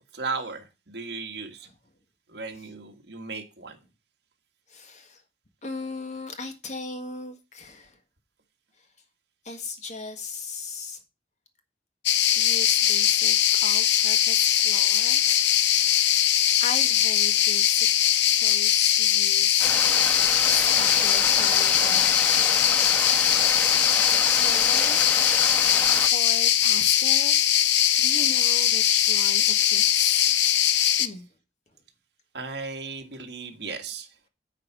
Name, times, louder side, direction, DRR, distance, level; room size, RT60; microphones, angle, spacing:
voice 1, 0.0-1.7 2.3-3.8 32.3-34.1, right 4 dB, 65° right, 1.7 m, -36 dB
voice 2, 4.7-5.2 5.6-8.0 8.8-8.9 9.4-11.0 12.3-15.9 16.4-17.9 18.4-19.7 20.4-22.1 23.6-25.1 25.9-27.4 28.0-30.3 31.0-31.3, left 4 dB, 40° left, 1.6 m, -37 dB
sound 1, 12.1-31.1, left 11 dB, 70° left, 0.7 m, -21 dB
sound 2, 19.6-26.1, left 1 dB, 10° left, 1.0 m, -29 dB
9.0 x 4.6 x 5.9 m
head